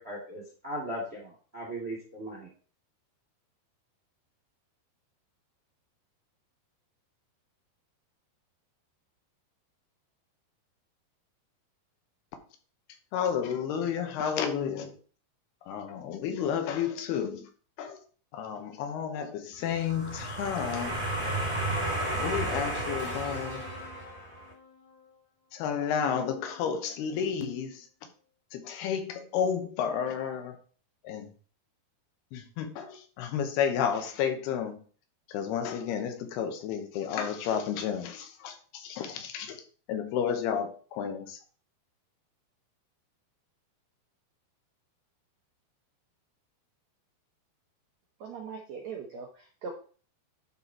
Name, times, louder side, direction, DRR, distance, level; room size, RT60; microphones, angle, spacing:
voice 1, 0.0-2.5, right 1 dB, 35° right, 1.0 m, -38 dB
voice 2, 13.1-15.0 15.7-17.5 17.8-18.0 18.3-21.1 22.1-23.7 25.5-27.9 28.5-30.6 31.0-31.3 32.3-34.8 35.3-39.6 39.9-41.4, left 8 dB, 80° left, 3.0 m, -31 dB
sound 1, 19.7-24.4, right 1 dB, 20° right, 1.6 m, -32 dB
sound 2, 23.0-25.3 26.6-26.8, left 4 dB, 55° left, 2.2 m, -49 dB
voice 3, 48.2-49.7, right 5 dB, 75° right, 1.6 m, -40 dB
11.5 x 4.2 x 4.4 m
omnidirectional pair, 4.7 m